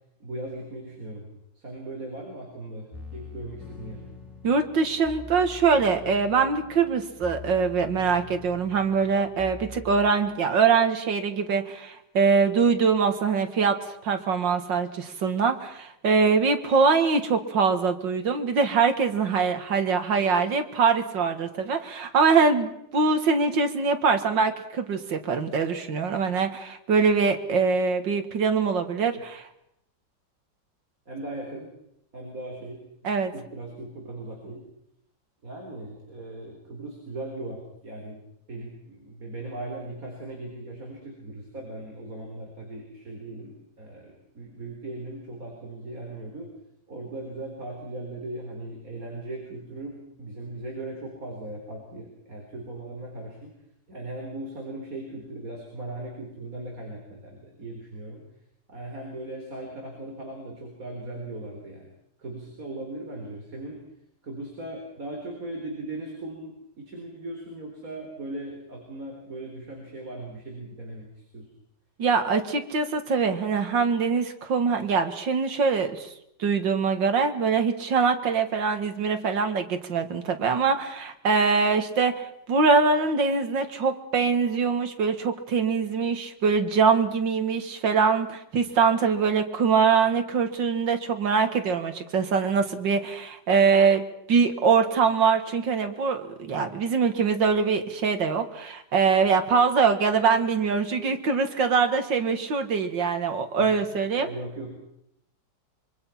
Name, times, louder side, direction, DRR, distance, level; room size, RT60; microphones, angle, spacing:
voice 1, 0.2-1.3 1.5-4.0 31.1-31.7 32.1-32.8 33.3-34.6 35.4-38.2 38.5-46.5 46.9-53.5 53.9-58.2 58.7-61.9 62.2-63.8 64.2-71.5 103.6-104.8, right 2 dB, 50° right, 0 dB, 4.5 m, -38 dB
sound 1, 2.9-10.1, left 3 dB, ahead, 3.6 m, -44 dB
voice 2, 4.4-13.8 14.0-29.4 33.0-33.3 72.0-76.1 76.4-104.3, right 5 dB, 80° right, 7 dB, 2.5 m, -23 dB
26.0 x 24.0 x 5.8 m, 0.78 s
omnidirectional pair, 2.0 m